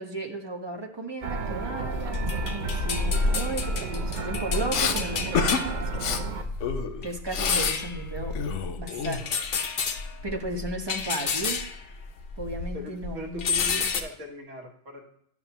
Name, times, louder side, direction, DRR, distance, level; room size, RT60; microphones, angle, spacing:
voice 1, 0.0-5.9 7.0-8.4 8.8-9.6 10.2-11.7 12.4-13.8, right 2 dB, 25° right, 1 dB, 0.8 m, -35 dB
sound 1, 1.2-6.5, right 4 dB, 50° right, 0.6 m, -33 dB
sound 2, 1.9-12.8 13.0-14.0, left 4 dB, 50° left, 0.7 m, -30 dB
Respiratory sounds, 4.7-5.0 5.3-5.6 5.9-6.2 6.6-7.8 8.0-9.5, left 7 dB, 85° left, 1.0 m, -29 dB
voice 2, 12.7-15.0, left 1 dB, 90° right, 2 dB, 1.6 m, -40 dB
11.0 x 6.1 x 2.9 m, 0.69 s
omnidirectional pair, 1.2 m